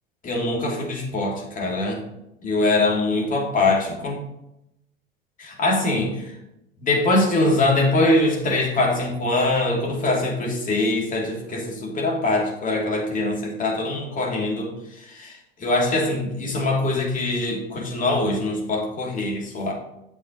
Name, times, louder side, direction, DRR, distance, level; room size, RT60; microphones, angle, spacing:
voice 1, 0.2-2.0 2.4-4.2 5.4-6.4 6.8-19.7, left 2 dB, 25° left, -1 dB, 2.5 m, -23 dB
9.3 x 6.9 x 2.9 m, 0.84 s
figure-of-eight pair, 75°, 30 cm